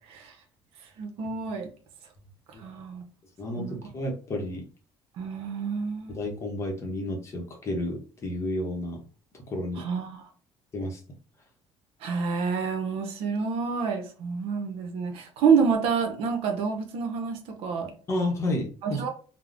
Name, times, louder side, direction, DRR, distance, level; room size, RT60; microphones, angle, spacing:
voice 1, 1.0-1.7 2.6-3.0 3.6-3.8 5.2-6.2 9.8-10.2 12.0-17.9 18.8-19.1, right 5 dB, 70° right, 5 dB, 0.6 m, -28 dB
voice 2, 3.4-4.6 6.1-9.0 9.5-9.8 10.7-11.0 18.1-19.0, left 1 dB, 30° left, 1 dB, 0.7 m, -31 dB
3.5 x 2.0 x 2.4 m, 0.39 s
cardioid pair, 150°, 10 cm